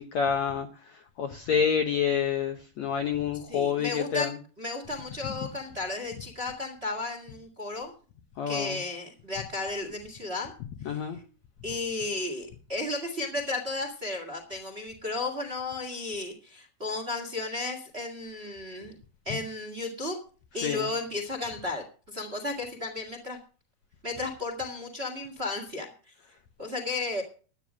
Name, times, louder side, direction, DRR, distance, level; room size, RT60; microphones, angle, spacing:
voice 1, 0.0-4.4 5.2-5.3 8.4-8.8 10.9-11.2 19.3-19.4 20.6-20.9, left 7 dB, 65° left, 5 dB, 1.8 m, -28 dB
voice 2, 3.5-4.3 4.6-7.9 8.4-10.5 11.6-18.9 19.2-20.2 20.5-23.4 24.0-25.9 26.6-27.2, left 2 dB, 25° right, 5 dB, 1.6 m, -34 dB
12.5 x 9.2 x 6.2 m, 0.39 s
omnidirectional pair, 4.5 m